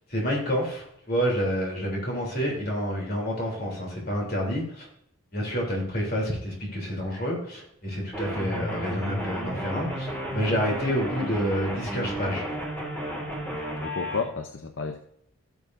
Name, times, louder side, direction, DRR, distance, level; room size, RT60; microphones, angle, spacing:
voice 1, 0.1-4.8 5.3-12.4, equal, 45° left, -2 dB, 3.3 m, -28 dB
sound 1, 8.1-14.2, right 1 dB, 10° left, 2.0 m, -33 dB
voice 2, 13.5-15.0, left 4 dB, 60° left, 6 dB, 0.7 m, -32 dB
14.5 x 7.1 x 2.6 m, 0.73 s
head